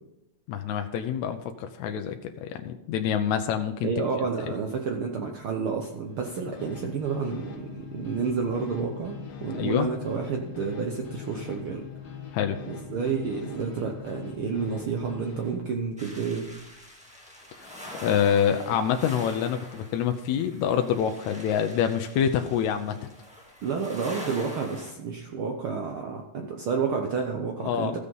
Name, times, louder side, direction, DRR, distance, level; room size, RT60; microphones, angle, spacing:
voice 1, 0.5-3.9 4.5-4.6 9.6-9.9 12.3-12.6 18.0-23.0 27.6-28.0, left 8 dB, 75° left, 6 dB, 1.8 m, -26 dB
voice 2, 3.8-11.8 12.6-16.5 23.6-28.0, right 5 dB, 85° right, 2 dB, 1.1 m, -30 dB
sound 1, 6.1-15.6, left 7 dB, 50° left, 2.0 m, -41 dB
sound 2, 16.0-24.9, left 1 dB, 5° right, 1.0 m, -44 dB
14.0 x 6.8 x 5.4 m, 0.88 s
omnidirectional pair, 3.7 m